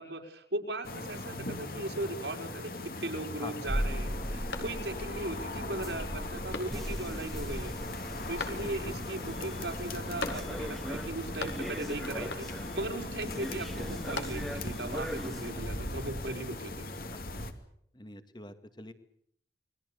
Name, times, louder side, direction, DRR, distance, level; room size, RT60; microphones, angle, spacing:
voice 1, 0.0-7.8 8.3-16.9, right 2 dB, 80° right, 3 dB, 4.7 m, -38 dB
sound 1, 0.8-17.5, left 2 dB, 55° left, 2.7 m, -39 dB
sound 2, 3.7-15.5, equal, ahead, 1.6 m, -39 dB
sound 3, 4.5-5.2 5.6-5.7 6.5-7.1 8.4-9.0 10.2-10.8 11.1-11.9 12.3-12.8 13.8-14.7, left 3 dB, 85° left, 4.7 m, -41 dB
voice 2, 17.9-18.9, left 1 dB, 25° left, 10 dB, 2.0 m, -45 dB
28.5 x 22.0 x 6.9 m, 0.70 s
head